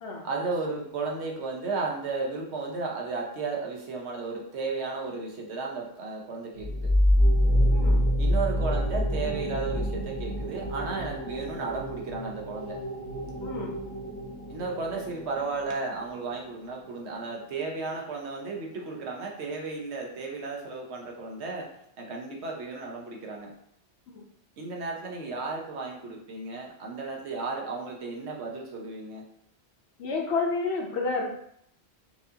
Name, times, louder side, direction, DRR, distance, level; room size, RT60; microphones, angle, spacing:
voice 1, 0.2-6.9 8.2-12.8 14.5-21.7 22.0-23.5 24.6-29.2, right 3 dB, 75° right, 0 dB, 1.1 m, -34 dB
sound 1, 6.5-15.9, equal, 45° right, 1.2 m, -27 dB
voice 2, 7.7-8.1 13.4-13.8 30.0-31.2, left 4 dB, 70° left, 0 dB, 1.0 m, -30 dB
4.6 x 2.5 x 2.7 m, 0.69 s
omnidirectional pair, 1.1 m